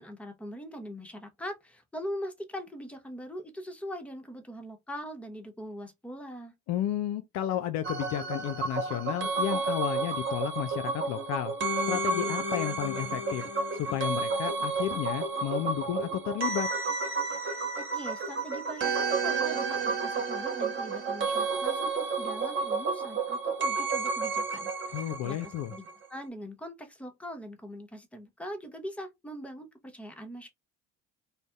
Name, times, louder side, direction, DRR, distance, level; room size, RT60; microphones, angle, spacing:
voice 1, 0.0-6.5 17.5-30.5, equal, 5° left, 0.8 m, -42 dB
voice 2, 6.7-11.5 11.9-13.4 13.7-16.7 24.9-25.7, left 11 dB, 55° left, 0.4 m, -32 dB
sound 1, 7.8-25.9 26.2-26.3, right 4 dB, 35° right, 1.1 m, -31 dB
2.6 x 2.1 x 3.3 m
hypercardioid pair, 65°, 34 cm